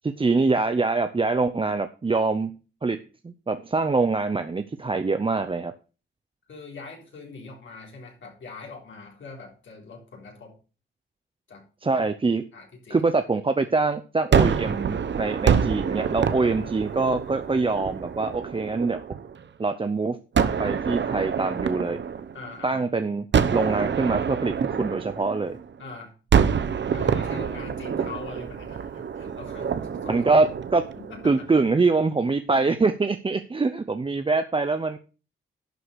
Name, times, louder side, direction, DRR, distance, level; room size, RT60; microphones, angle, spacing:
voice 1, 0.0-2.5 2.8-5.7 11.8-12.4 12.9-19.0 19.6-20.2 20.6-22.0 22.6-23.2 23.5-25.6 30.1-30.5 30.7-30.8 31.2-35.0, right 3 dB, 25° right, 9 dB, 0.7 m, -24 dB
voice 2, 6.5-10.6 11.5-11.6 12.5-13.0 16.4-16.9 22.3-22.8 25.8-26.1 26.9-30.3 31.0-31.5, left 3 dB, 65° left, 0 dB, 3.8 m, -42 dB
Gunshot gunfire, 14.3-19.4 20.3-22.8 23.3-25.8 26.3-31.5, right 7 dB, 60° right, 0.9 m, -26 dB
11.5 x 4.8 x 6.5 m, 0.35 s
cardioid pair, 80°, 21 cm